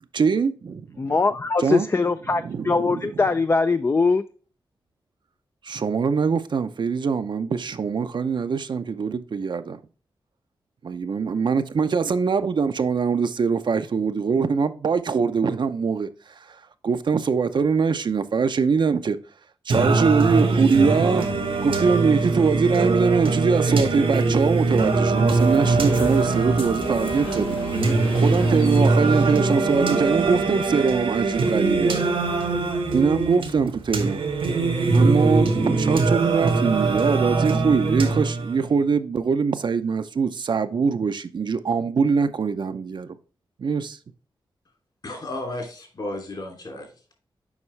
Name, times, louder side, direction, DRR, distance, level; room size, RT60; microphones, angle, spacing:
voice 1, 0.1-0.9 1.6-1.9 2.4-3.0 5.6-9.8 10.8-16.1 16.8-19.2 19.7-21.3 21.6-27.6 28.1-31.9 32.9-34.2 34.9-43.1 43.6-44.0, right 5 dB, 60° right, 0.6 m, -23 dB
voice 2, 1.0-4.2, left 4 dB, 30° left, 0.3 m, -21 dB
Singing, 19.7-38.7, right 3 dB, 90° right, 1.7 m, -22 dB
sound 1, 25.3-30.4, left 2 dB, 80° left, 1.8 m, -36 dB
voice 3, 45.0-47.1, left 1 dB, 50° left, 2.9 m, -34 dB
7.1 x 5.4 x 3.2 m
wide cardioid pair, 115°, 9 cm